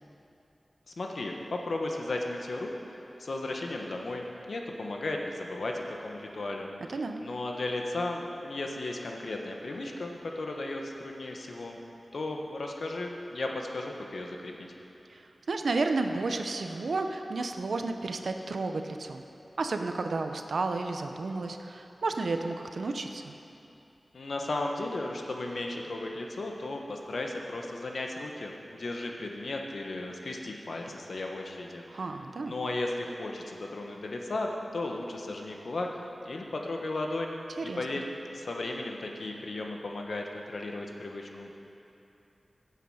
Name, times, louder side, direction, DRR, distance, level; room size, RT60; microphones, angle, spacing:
voice 1, 0.9-11.8 12.1-14.5 24.1-32.1 32.4-35.9 36.2-37.4 37.6-38.0 38.3-41.5, left 2 dB, 75° left, 1 dB, 1.3 m, -35 dB
voice 2, 6.9-7.2 15.1-15.2 15.5-19.2 19.6-23.3 31.9-32.5 37.6-38.0, right 3 dB, 85° right, 6 dB, 0.8 m, -32 dB
15.5 x 8.2 x 5.7 m, 2.9 s
wide cardioid pair, 85°, 0 cm